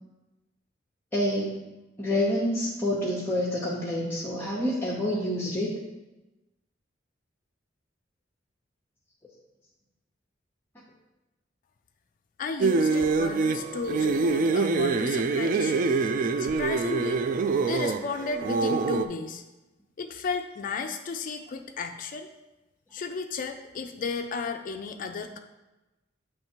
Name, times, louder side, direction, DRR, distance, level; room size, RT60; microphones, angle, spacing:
voice 1, 1.1-1.6 2.0-5.7, left 1 dB, 10° left, -7 dB, 0.9 m, -27 dB
voice 2, 12.4-15.9 16.4-17.3 17.7-19.4 20.0-22.3 22.9-25.4, left 4 dB, 45° left, 6 dB, 0.4 m, -34 dB
sound 1, 12.6-19.1, right 4 dB, 45° right, 0.3 m, -25 dB
7.9 x 3.2 x 4.4 m, 1.0 s
head